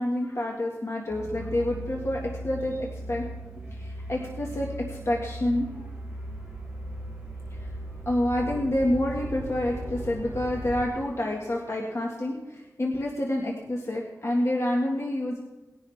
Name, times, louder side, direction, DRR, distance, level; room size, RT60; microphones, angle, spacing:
voice 1, 0.0-3.3 3.8-5.9 7.5-7.7 8.1-15.4, left 1 dB, 50° left, -1 dB, 1.8 m, -28 dB
sound 1, 1.1-10.9, right 1 dB, 10° right, 4.0 m, -38 dB
19.5 x 11.0 x 3.5 m, 1.0 s
wide cardioid pair, 65°, 6 cm